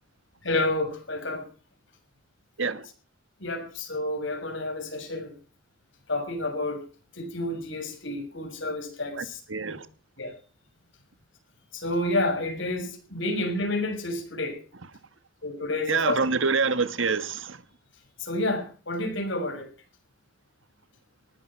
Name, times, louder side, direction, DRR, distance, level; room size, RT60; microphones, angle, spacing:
voice 1, 0.4-1.4 3.4-5.3 6.1-6.8 7.2-9.4 9.7-9.8 10.2-10.3 11.7-14.6 15.4-16.2 18.2-19.7, left 2 dB, 65° left, 6.5 m, -29 dB
voice 2, 9.2-9.8 15.9-17.6, right 4 dB, 75° right, 1.5 m, -26 dB
19.5 x 14.5 x 4.5 m
head